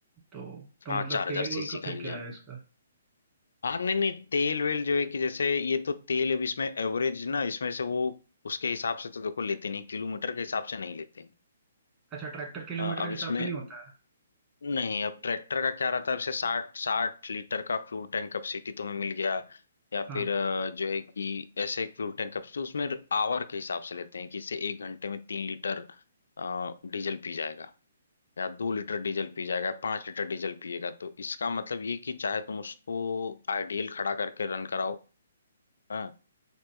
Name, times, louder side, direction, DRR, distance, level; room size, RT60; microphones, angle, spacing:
voice 1, 0.3-2.6 12.1-13.8 20.1-20.3, right 5 dB, 20° right, 1.8 m, -37 dB
voice 2, 0.9-2.2 3.6-8.2 8.4-11.3 12.8-13.5 14.6-19.6 19.9-25.9 26.4-27.7 28.4-35.0 35.9-36.1, left 5 dB, 70° left, 0.3 m, -31 dB
3.7 x 2.5 x 3.6 m
figure-of-eight pair, 130°, 0 cm